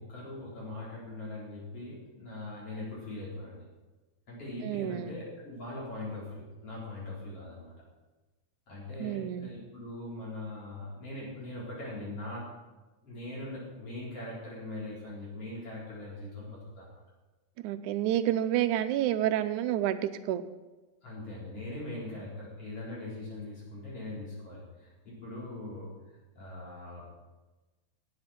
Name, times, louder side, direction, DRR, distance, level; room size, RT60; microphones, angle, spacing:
voice 1, 0.0-3.6 4.3-7.7 8.7-12.5 13.0-16.9 21.0-25.9 26.3-27.0, left 2 dB, 45° left, -6 dB, 5.0 m, -41 dB
voice 2, 4.6-5.1 9.0-9.5 17.6-20.4, right 12 dB, 80° right, 11 dB, 2.0 m, -29 dB
17.5 x 8.2 x 4.3 m, 1.2 s
omnidirectional pair, 3.6 m